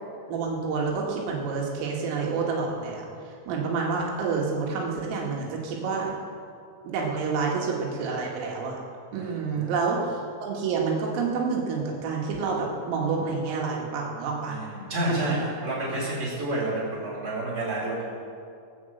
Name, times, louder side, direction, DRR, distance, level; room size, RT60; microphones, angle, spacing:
voice 1, 0.3-3.1 3.5-6.2 6.8-8.8 9.1-10.0 10.4-14.6 15.1-15.2, right 5 dB, 85° right, -2 dB, 4.5 m, -28 dB
voice 2, 9.1-9.7 14.4-18.0, right 1 dB, 15° right, -7 dB, 4.5 m, -30 dB
21.5 x 7.2 x 7.9 m, 2.5 s
omnidirectional pair, 5.7 m